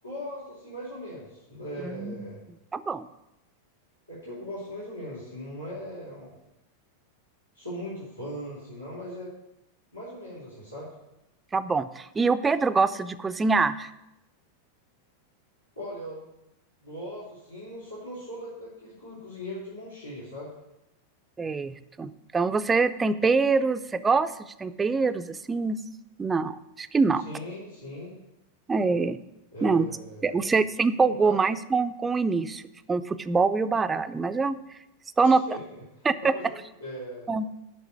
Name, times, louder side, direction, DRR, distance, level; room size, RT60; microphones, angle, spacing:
voice 1, 0.0-2.4 4.1-6.4 7.5-9.3 9.9-10.9 15.7-16.2 16.8-20.5 27.2-28.1 29.5-30.5 31.2-31.4 35.2-37.3, equal, 85° left, -9 dB, 3.6 m, -39 dB
voice 2, 1.8-2.3 2.7-3.1 11.5-13.9 21.4-24.3 24.6-25.8 26.2-27.2 28.7-29.2 29.6-29.9 30.2-32.6 32.9-34.6 35.2-35.4 36.0-36.3 37.3-37.5, right 4 dB, 15° right, 12 dB, 0.5 m, -24 dB
8.7 x 6.1 x 8.1 m, 0.89 s
figure-of-eight pair, 90°, 0 cm